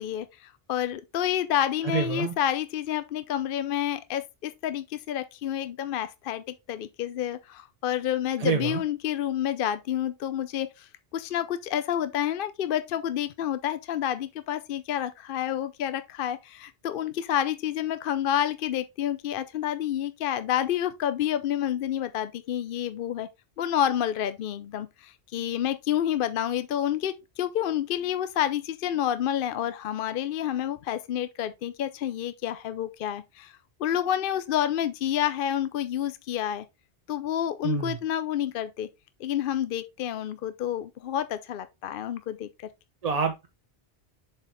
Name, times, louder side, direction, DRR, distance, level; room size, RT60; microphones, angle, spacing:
voice 1, 0.0-10.9 11.1-23.3 23.6-33.5 33.8-36.6 37.1-38.9 39.2-42.5, left 10 dB, 65° left, 0.7 m, -29 dB
voice 2, 1.8-2.3 8.4-8.8 37.6-38.0 43.0-43.5, right 5 dB, 45° right, 0.7 m, -27 dB
7.1 x 4.4 x 3.3 m
omnidirectional pair, 1.1 m